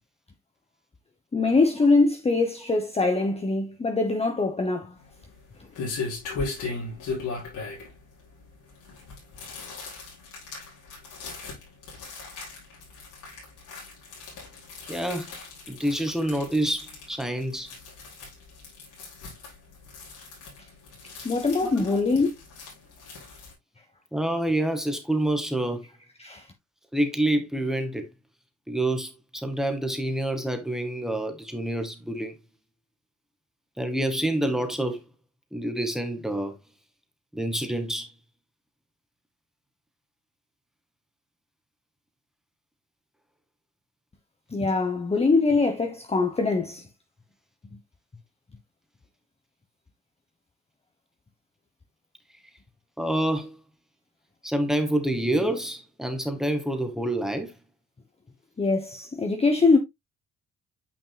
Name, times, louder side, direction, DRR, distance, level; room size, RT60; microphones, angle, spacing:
voice 1, 1.3-4.9 21.2-22.3 26.2-26.5 44.5-46.8 58.6-59.8, left 3 dB, 20° left, 1.0 m, -23 dB
sound 1, 5.0-23.5, left 3 dB, 80° left, 5.0 m, -38 dB
voice 2, 14.9-15.3 15.7-17.7 21.6-21.9 24.1-25.8 26.9-28.1 28.7-32.4 33.8-35.0 35.5-36.5 37.3-38.1 53.0-53.6 54.4-57.5, right 1 dB, ahead, 1.8 m, -27 dB
9.2 x 5.4 x 2.2 m
cardioid pair, 90°, 30 cm